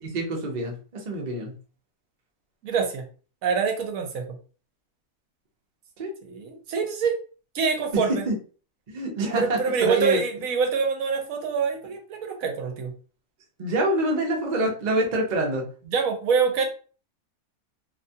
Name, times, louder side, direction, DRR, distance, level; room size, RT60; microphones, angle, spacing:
voice 1, 0.0-1.5 6.0-6.1 7.9-8.3 8.9-10.2 13.6-15.6, right 1 dB, 50° right, 0 dB, 0.5 m, -26 dB
voice 2, 2.6-3.0 3.4-4.2 6.2-7.2 7.5-8.2 9.4-12.9 15.9-16.7, right 5 dB, 70° right, 4 dB, 1.0 m, -25 dB
2.8 x 2.2 x 2.6 m, 0.38 s
omnidirectional pair, 1.6 m